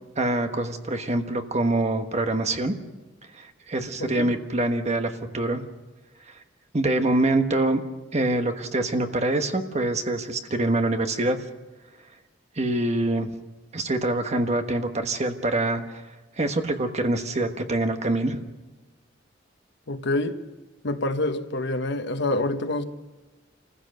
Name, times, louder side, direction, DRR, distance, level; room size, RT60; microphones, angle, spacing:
voice 1, 0.2-2.7 3.4-5.6 6.7-7.8 8.1-11.4 12.6-13.3 13.7-16.0 16.4-18.4, right 2 dB, 35° right, 1.3 m, -25 dB
voice 2, 4.0-4.3 19.9-20.4 20.8-22.8, left 2 dB, 65° left, 1.2 m, -27 dB
27.0 x 15.5 x 6.6 m
head